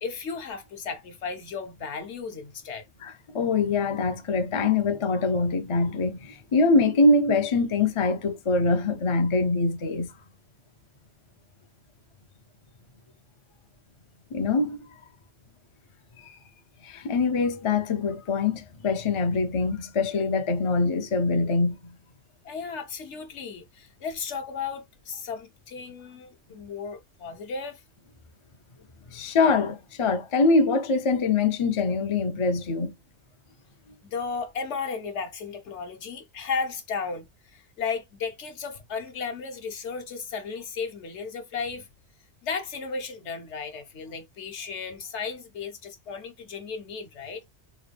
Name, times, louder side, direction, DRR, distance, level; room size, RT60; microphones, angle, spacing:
voice 1, 0.0-2.8 22.4-27.8 34.0-37.3 37.5-41.9 42.4-47.4, left 5 dB, 70° left, 1.1 m, -34 dB
voice 2, 3.0-10.1 14.3-14.8 16.2-16.4 16.8-22.0 29.1-32.9, left 3 dB, 45° left, 0.4 m, -24 dB
3.9 x 2.2 x 3.2 m
omnidirectional pair, 1.3 m